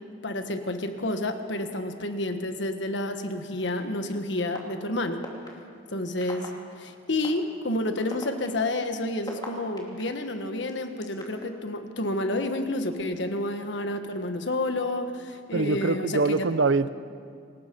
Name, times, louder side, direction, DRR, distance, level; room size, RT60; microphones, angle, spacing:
voice 1, 0.2-5.3 5.9-6.5 6.8-16.4, left 1 dB, 65° left, 7 dB, 1.5 m, -30 dB
sound 1, 3.7-3.8 4.5-4.6 5.2-5.5 6.2-6.5 7.2-7.3 8.0-10.0 10.7-11.5, left 2 dB, 20° left, 2.9 m, -39 dB
voice 2, 15.5-16.9, right 3 dB, 70° right, 14 dB, 0.7 m, -24 dB
26.5 x 19.0 x 5.4 m, 2.3 s
head